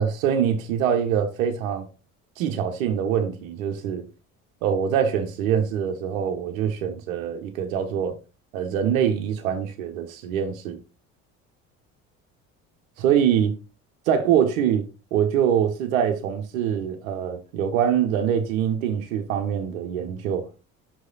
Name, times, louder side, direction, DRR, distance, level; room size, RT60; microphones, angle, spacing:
voice 1, 0.0-1.9 2.4-4.0 4.6-8.2 8.5-10.8 13.0-13.5 14.1-14.8 15.1-20.6, right 8 dB, 80° right, 1.1 m, -24 dB
6.2 x 4.8 x 4.1 m
hypercardioid pair, 60°, 40 cm